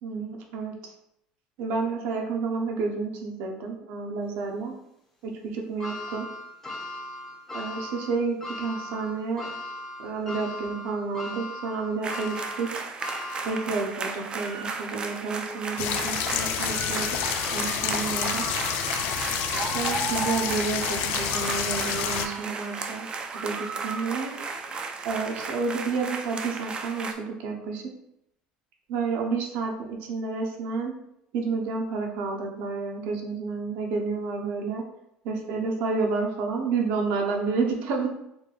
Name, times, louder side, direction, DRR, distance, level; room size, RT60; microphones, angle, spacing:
voice 1, 0.0-0.9 1.6-4.7 5.2-6.3 7.5-9.5 10.0-12.7 13.4-17.1 17.5-18.5 19.5-23.1 23.4-24.3 25.0-27.9 28.9-30.9 31.3-34.8 35.2-38.1, right 4 dB, 75° right, 1 dB, 0.9 m, -30 dB
sound 1, 5.8-14.2 14.7-14.8 15.9-16.0, left 1 dB, 15° left, 0.9 m, -38 dB
sound 2, 12.0-27.1, right 4 dB, 30° right, 0.5 m, -34 dB
sound 3, 15.8-22.3, left 9 dB, 75° left, 0.4 m, -29 dB
4.3 x 2.6 x 3.2 m, 0.80 s
cardioid pair, 120°, 3 cm